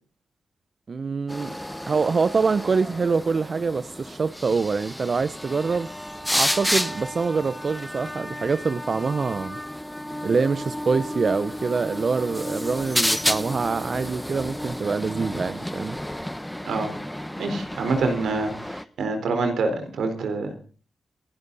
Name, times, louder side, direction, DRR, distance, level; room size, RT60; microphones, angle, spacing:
voice 1, 0.9-1.6 1.9-5.9 6.3-9.6 10.2-16.0, right 4 dB, 55° right, 14 dB, 0.8 m, -25 dB
sound 1, 1.3-18.9, equal, 5° left, 1.1 m, -31 dB
voice 2, 17.4-20.6, right 3 dB, 80° right, 6 dB, 4.2 m, -26 dB
27.5 x 12.5 x 4.1 m, 0.39 s
supercardioid pair, 40°, 0 cm